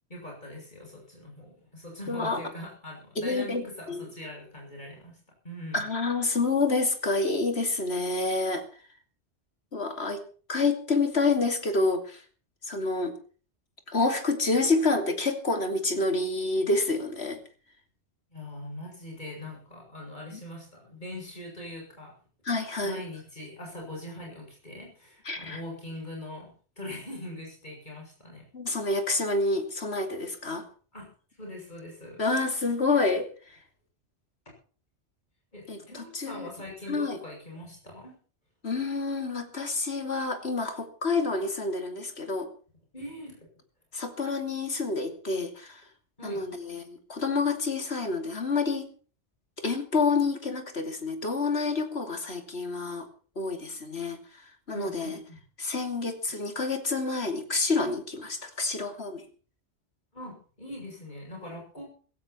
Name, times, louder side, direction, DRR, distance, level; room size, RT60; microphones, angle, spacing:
voice 1, 0.1-5.2 5.4-5.8 18.3-22.1 22.6-28.5 30.9-31.1 31.4-32.3 35.5-38.1 42.9-43.4 46.2-46.4 54.7-55.4 60.1-61.8, left 1 dB, 40° left, -1 dB, 8.1 m, -42 dB
voice 2, 2.1-2.4 3.2-4.1 5.7-8.6 9.7-10.2 10.5-12.2 12.6-13.2 13.9-17.4 20.3-20.4 22.5-23.0 25.3-25.6 28.5-30.6 32.2-33.3 35.7-36.5 36.9-37.2 38.6-42.5 43.9-45.8 46.2-48.9 49.6-53.1 53.4-54.2 54.7-55.2 55.6-59.2, left 3 dB, 65° left, 6 dB, 3.0 m, -28 dB
16.0 x 16.0 x 4.5 m, 0.40 s
omnidirectional pair, 1.1 m